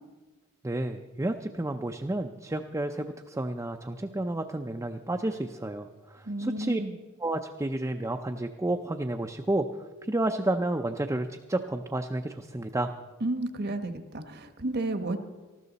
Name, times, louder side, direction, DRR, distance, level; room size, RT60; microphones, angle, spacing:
voice 1, 0.6-6.8 7.2-9.7 10.0-12.9, right 1 dB, 15° right, 5 dB, 0.5 m, -31 dB
voice 2, 6.3-6.9 13.2-15.2, right 2 dB, 50° right, 9 dB, 1.1 m, -32 dB
19.0 x 14.0 x 4.1 m, 1.3 s
head